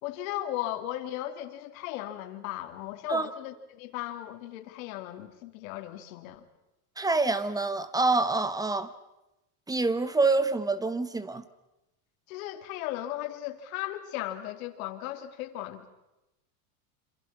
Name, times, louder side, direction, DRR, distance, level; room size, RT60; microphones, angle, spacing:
voice 1, 0.0-6.4 12.3-15.9, left 13 dB, 65° left, 6 dB, 3.2 m, -36 dB
voice 2, 7.0-8.9 9.7-11.4, right 3 dB, 10° right, 14 dB, 1.0 m, -26 dB
27.0 x 26.5 x 6.0 m, 0.95 s
supercardioid pair, 145°, 44 cm